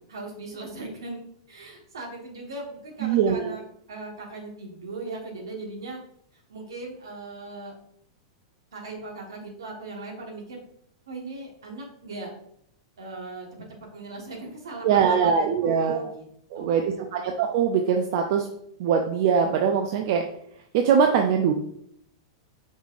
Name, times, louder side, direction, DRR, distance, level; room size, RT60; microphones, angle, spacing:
voice 1, 0.0-3.6 3.9-6.0 6.3-7.7 8.7-10.6 11.1-12.3 13.0-13.5 13.9-16.3 16.6-17.2, right 3 dB, 85° right, 0 dB, 1.2 m, -38 dB
voice 2, 3.0-3.6 14.8-16.0 16.5-18.4 18.8-20.2 20.7-21.5, right 7 dB, 60° right, 4 dB, 0.4 m, -22 dB
5.3 x 3.2 x 2.5 m, 0.70 s
hypercardioid pair, 110°, 2 cm